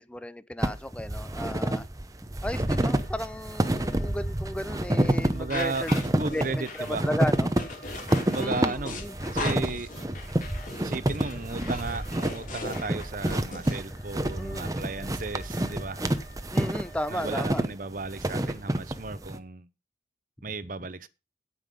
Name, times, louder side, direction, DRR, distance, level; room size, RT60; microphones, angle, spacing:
voice 1, 0.0-1.8 2.4-7.5 8.3-9.1 14.4-14.7 16.5-17.6, left 1 dB, 5° left, 0.5 m, -34 dB
sound 1, 0.6-19.4, right 1 dB, 20° right, 0.8 m, -29 dB
sound 2, 2.4-17.5, left 1 dB, 60° left, 6.1 m, -52 dB
voice 2, 5.3-7.0 8.3-9.0 9.3-9.9 10.8-16.0 17.1-19.7 20.4-21.1, right 3 dB, 45° right, 0.9 m, -35 dB
sound 3, 5.5-13.7, left 3 dB, 45° left, 3.2 m, -38 dB
17.0 x 5.7 x 5.3 m
head